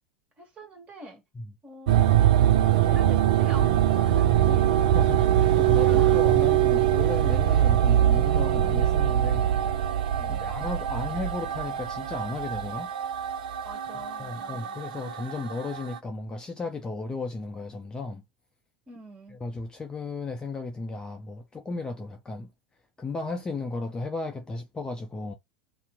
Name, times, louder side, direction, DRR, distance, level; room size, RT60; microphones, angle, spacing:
voice 1, 0.4-1.2 1.6-2.2 2.5-4.7 5.4-5.6 5.9-6.6 10.2-10.5 13.6-14.8 18.9-19.4, right 1 dB, 25° right, 1.5 m, -44 dB
sound 1, 1.9-16.0, right 11 dB, 65° right, 0.4 m, -23 dB
voice 2, 4.7-5.2 5.5-9.8 10.3-12.9 14.2-18.2 19.3-22.5 23.0-25.3, left 3 dB, 15° left, 0.5 m, -34 dB
2.8 x 2.0 x 3.6 m
figure-of-eight pair, 80°, 5 cm